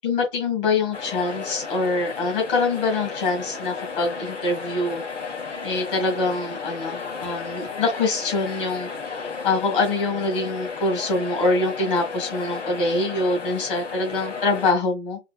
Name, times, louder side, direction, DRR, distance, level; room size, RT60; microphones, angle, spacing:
voice 1, 0.0-5.0 5.6-8.9 9.4-15.2, left 3 dB, 45° left, 2.2 m, -24 dB
sound 1, 0.9-14.7, left 5 dB, 70° left, 2.6 m, -33 dB
5.0 x 3.2 x 2.3 m
hypercardioid pair, 150°, 38 cm